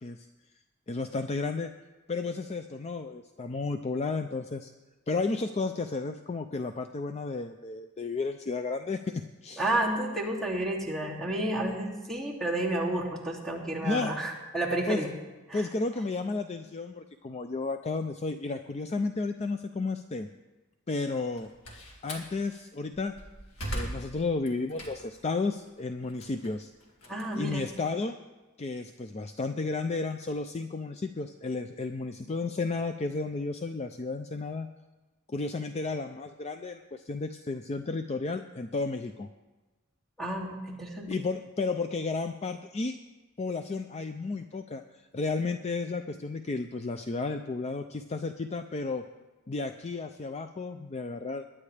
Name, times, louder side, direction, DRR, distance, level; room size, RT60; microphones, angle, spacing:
voice 1, 0.9-1.7 2.1-4.7 5.1-9.7 13.8-14.2 14.9-15.0 15.5-20.3 20.9-21.5 22.0-23.1 23.7-26.7 27.3-28.2 28.6-34.7 35.3-39.3 41.1-43.0 43.4-44.8 45.1-49.0 49.5-51.4, left 3 dB, 30° left, 8 dB, 0.4 m, -32 dB
voice 2, 9.6-15.1 15.5-15.6 27.1-27.6 40.2-41.1, right 1 dB, ahead, -3 dB, 2.5 m, -31 dB
Slam, 21.2-22.3 22.9-25.3 25.7-28.1, equal, 80° left, 2.4 m, -40 dB
21.5 x 9.9 x 3.3 m, 1.2 s
head